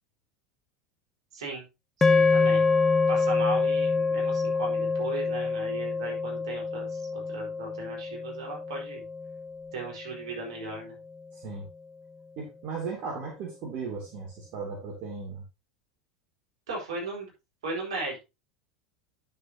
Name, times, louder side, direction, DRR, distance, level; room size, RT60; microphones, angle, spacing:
voice 1, 1.3-1.7 2.1-2.6 3.1-9.0 9.7-11.0 16.7-17.3 17.6-18.2, right 3 dB, 70° right, -1 dB, 4.7 m, -37 dB
sound 1, 2.0-10.4, left 4 dB, 10° left, 0.9 m, -26 dB
voice 2, 11.3-11.6 12.4-15.4, right 4 dB, 50° right, -1 dB, 2.8 m, -36 dB
10.5 x 6.9 x 2.9 m, 0.25 s
figure-of-eight pair, 80°, 3 cm